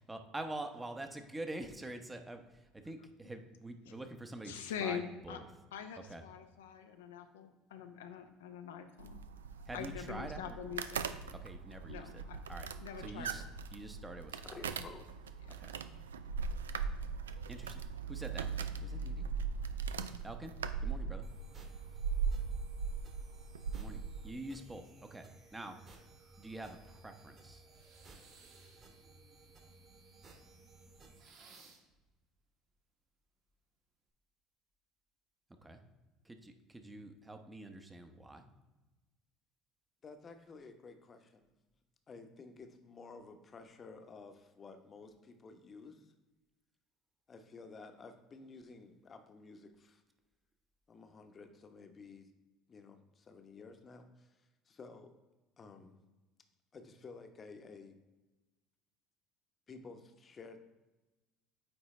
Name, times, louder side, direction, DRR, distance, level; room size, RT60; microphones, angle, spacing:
voice 1, 0.0-5.5 6.0-6.2 9.7-10.6 11.3-12.2 12.5-12.7 13.0-14.6 15.6-15.8 17.5-19.3 20.2-20.5 20.8-21.3 23.7-25.9 26.4-27.7 35.6-35.8 36.2-38.5, right 1 dB, 15° right, 6 dB, 0.9 m, -46 dB
voice 2, 4.5-5.4 5.7-9.2 9.7-11.2 11.9-12.4 12.8-13.4 15.5-15.6, left 8 dB, 85° left, 7 dB, 0.6 m, -44 dB
sound 1, 9.0-24.3, right 6 dB, 90° right, 0.3 m, -40 dB
voice 3, 14.4-15.1 40.0-41.5 42.1-46.1 47.3-50.0 50.9-52.3 52.7-54.3 54.7-55.2 55.6-56.0 56.7-57.9 59.7-60.7, left 4 dB, 35° left, 7 dB, 0.9 m, -53 dB
sound 2, 21.2-31.2, right 3 dB, 40° right, 1.7 m, -59 dB
sound 3, 27.7-29.1 31.1-32.0, right 4 dB, 55° right, 1.7 m, -60 dB
8.8 x 3.9 x 3.2 m, 1.1 s
hypercardioid pair, 70°, 0 cm